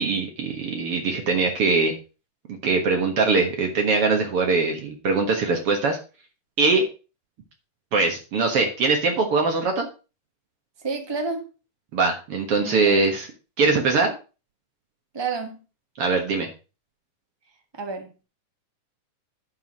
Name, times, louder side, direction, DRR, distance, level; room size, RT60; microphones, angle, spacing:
voice 1, 0.0-1.9 2.6-6.0 6.6-6.8 7.9-9.9 11.9-13.3 13.6-14.1 16.0-16.5, right 4 dB, 55° right, 2.2 m, -22 dB
voice 2, 10.8-11.5 12.6-13.0 15.1-15.6 17.7-18.1, right 4 dB, 25° right, 0.6 m, -30 dB
11.5 x 4.8 x 5.9 m
omnidirectional pair, 3.5 m